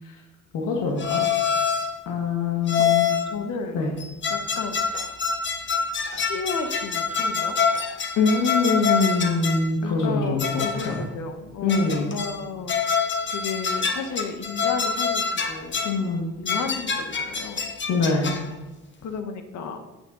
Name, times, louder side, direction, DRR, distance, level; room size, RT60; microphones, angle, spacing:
voice 1, 0.5-1.2 2.1-3.1 3.7-3.9 8.2-11.1 11.6-12.1 15.8-16.3 17.9-18.3, left 4 dB, 90° left, -1 dB, 1.8 m, -23 dB
sound 1, 1.0-2.0 2.7-3.4 4.0-9.7 10.4-11.1 11.7-12.4 12.7-16.0 16.5-18.5, left 6 dB, 40° left, 1.2 m, -26 dB
voice 2, 3.3-3.9 4.3-4.9 6.1-7.6 9.8-16.1 16.4-17.7 19.0-19.8, left 5 dB, 75° left, 7 dB, 1.5 m, -33 dB
8.9 x 8.8 x 4.1 m, 1.1 s
cardioid pair, 90°, 30 cm